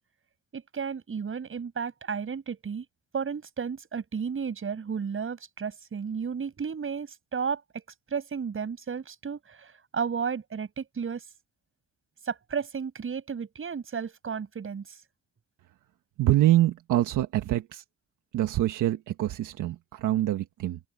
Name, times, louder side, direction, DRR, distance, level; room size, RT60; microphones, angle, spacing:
voice 1, 0.5-2.8 3.1-7.8 8.1-11.2 12.3-14.8, right 6 dB, 45° right, 7.9 m, -33 dB
voice 2, 16.2-17.8 18.3-20.8, right 14 dB, 85° right, 1.6 m, -25 dB
open air
cardioid pair, 90°, 30 cm